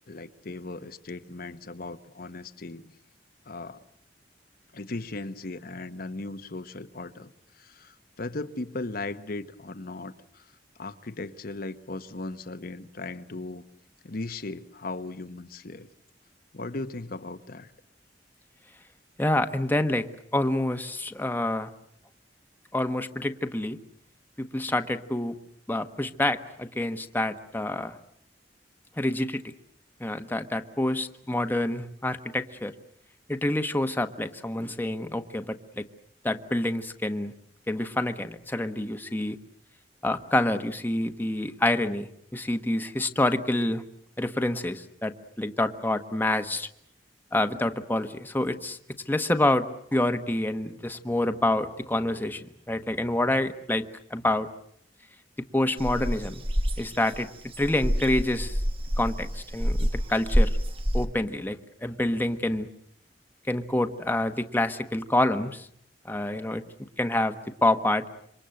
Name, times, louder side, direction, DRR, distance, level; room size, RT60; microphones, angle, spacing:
voice 1, 0.1-2.9 3.4-3.8 4.7-13.6 14.0-15.9 16.5-17.7, left 2 dB, 55° left, 10 dB, 1.1 m, -37 dB
voice 2, 19.2-21.7 22.7-23.8 24.4-25.4 25.7-28.0 29.0-29.4 30.0-32.7 33.3-35.9 36.2-37.3 37.7-39.4 40.0-43.8 44.2-46.7 47.3-48.8 49.1-54.5 55.5-56.4 56.8-57.3 57.6-58.6 59.0-60.6 60.9-62.7 63.5-65.7 66.0-66.6 67.0-68.1, left 1 dB, 10° left, 7 dB, 1.2 m, -27 dB
sound 1, 55.8-61.1, equal, 35° right, 1.9 m, -27 dB
27.5 x 25.0 x 7.8 m, 0.69 s
head